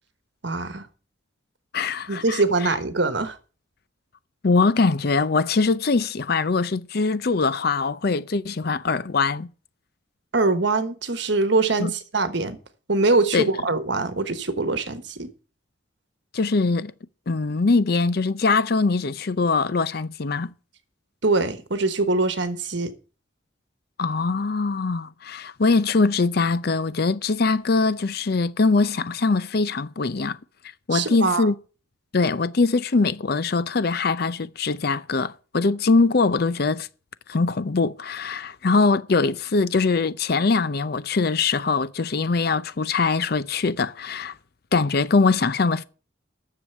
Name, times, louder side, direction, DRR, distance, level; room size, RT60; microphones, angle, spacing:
voice 1, 0.4-0.9 2.1-3.4 10.3-12.6 12.9-15.3 21.2-22.9 30.9-31.5, right 3 dB, 65° right, 1.3 m, -23 dB
voice 2, 1.7-2.4 4.4-9.5 11.8-11.9 13.3-13.5 16.3-16.9 17.3-20.5 24.0-30.4 30.9-31.5 32.1-36.9 37.3-44.3 44.7-45.8, left 4 dB, 50° left, 0.6 m, -22 dB
10.0 x 6.9 x 7.9 m
head